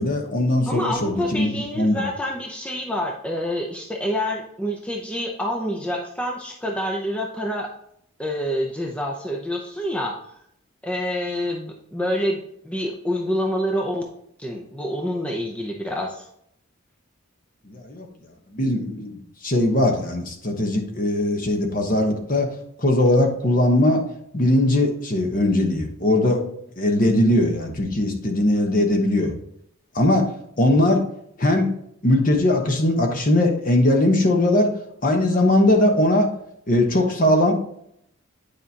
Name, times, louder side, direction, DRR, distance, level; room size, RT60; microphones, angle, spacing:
voice 1, 0.0-2.0 17.7-18.0 18.5-22.5 22.8-24.0 24.3-26.4 26.8-29.3 29.9-30.3 30.6-31.0 31.4-31.7 32.0-34.7 35.0-36.3 36.7-37.5, left 1 dB, 40° left, 3 dB, 1.1 m, -20 dB
voice 2, 0.7-7.7 8.2-10.2 10.8-14.0 14.4-16.3, equal, 5° left, 0 dB, 0.6 m, -27 dB
9.4 x 5.0 x 2.9 m, 0.72 s
head